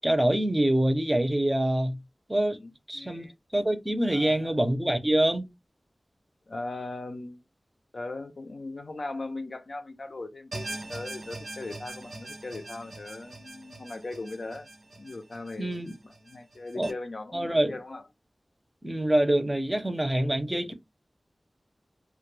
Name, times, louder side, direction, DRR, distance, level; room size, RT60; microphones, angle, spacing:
voice 1, 0.0-2.0 2.3-2.6 2.9-3.3 3.5-5.4 15.6-15.9 16.7-16.9 17.3-17.7 18.8-20.7, right 1 dB, 20° right, 0.5 m, -25 dB
voice 2, 2.5-3.3 4.1-4.6 6.5-7.4 7.9-18.0, left 2 dB, 70° left, 0.5 m, -39 dB
sound 1, 10.5-16.9, right 2 dB, 75° right, 0.6 m, -42 dB
2.2 x 2.1 x 3.1 m
wide cardioid pair, 80°, 0 cm